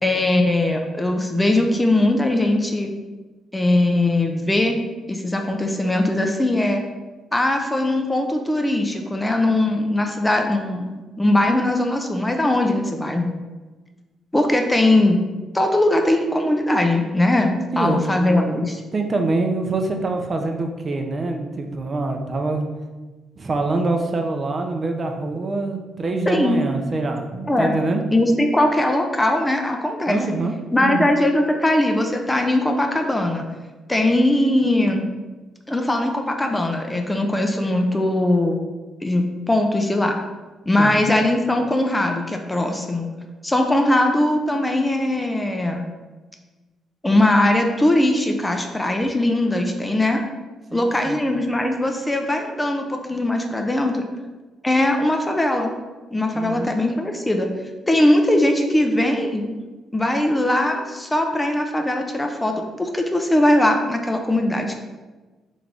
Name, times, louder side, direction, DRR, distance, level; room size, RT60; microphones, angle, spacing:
voice 1, 0.0-2.9 3.5-4.8 5.1-6.8 7.3-13.3 14.3-15.2 15.5-18.8 26.3-26.6 27.5-27.7 28.1-30.2 30.7-33.4 33.9-35.0 35.7-38.6 39.0-40.2 40.7-43.1 43.4-45.8 47.0-50.2 50.7-54.0 54.6-55.7 56.1-57.5 57.9-59.6 59.9-64.8, left 1 dB, 15° left, 3 dB, 0.4 m, -20 dB
voice 2, 17.7-18.5 18.9-22.6 23.4-28.0 30.1-30.5 30.8-31.1 40.8-40.9 50.7-51.2 56.3-56.7, right 3 dB, 35° right, 4 dB, 0.5 m, -25 dB
3.3 x 3.1 x 3.8 m, 1.2 s
cardioid pair, 90°, 0 cm